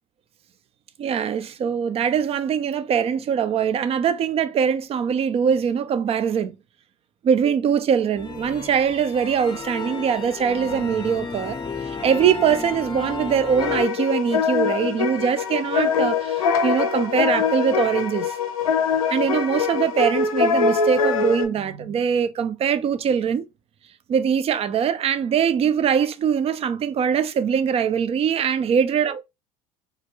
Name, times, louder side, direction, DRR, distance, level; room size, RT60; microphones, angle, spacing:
voice 1, 1.0-6.6 7.2-11.6 11.8-18.4 19.1-23.4 24.1-29.2, right 7 dB, 35° right, 0.4 m, -22 dB
sound 1, 8.2-13.9, left 4 dB, 25° left, 0.6 m, -33 dB
sound 2, 13.6-21.5, left 6 dB, 85° left, 0.6 m, -23 dB
3.4 x 2.1 x 3.0 m
hypercardioid pair, 70°, 18 cm